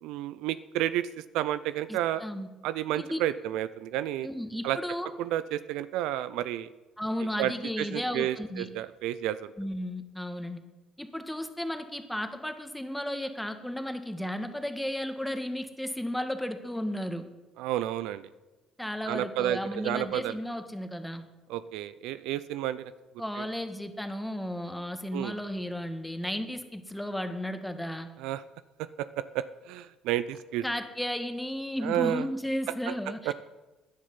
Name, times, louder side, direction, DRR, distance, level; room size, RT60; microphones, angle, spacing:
voice 1, 0.0-1.1 1.3-2.2 2.6-4.3 4.6-4.8 5.2-6.7 7.4-9.5 17.6-18.3 19.1-20.3 21.5-22.9 23.4-23.5 25.1-25.3 28.2-28.4 29.0-30.6 31.8-32.3 32.9-33.0 33.2-33.3, right 12 dB, 75° right, 15 dB, 0.5 m, -31 dB
voice 2, 1.9-2.5 2.9-3.2 4.2-5.1 7.0-8.7 9.6-10.6 11.0-17.2 18.8-21.2 23.2-28.1 30.6-33.3, equal, 5° left, 7 dB, 1.8 m, -34 dB
16.5 x 10.5 x 5.6 m, 1.1 s
hypercardioid pair, 60°, 0 cm